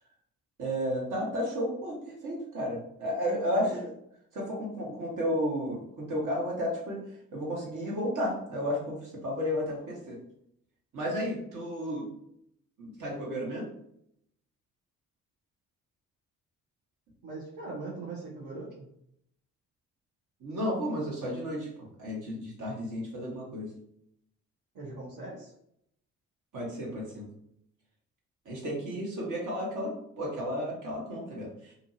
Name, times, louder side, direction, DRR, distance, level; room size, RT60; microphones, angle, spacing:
voice 1, 0.6-3.9 4.3-7.0 7.3-10.2 10.9-12.1 12.8-13.7 20.4-21.7 22.0-23.7 26.5-27.3 28.4-31.5, equal, 50° right, -3 dB, 1.4 m, -32 dB
voice 2, 17.2-18.9 24.7-25.5, right 3 dB, 70° right, -7 dB, 1.1 m, -40 dB
2.8 x 2.5 x 2.7 m, 0.73 s
hypercardioid pair, 50°, 39 cm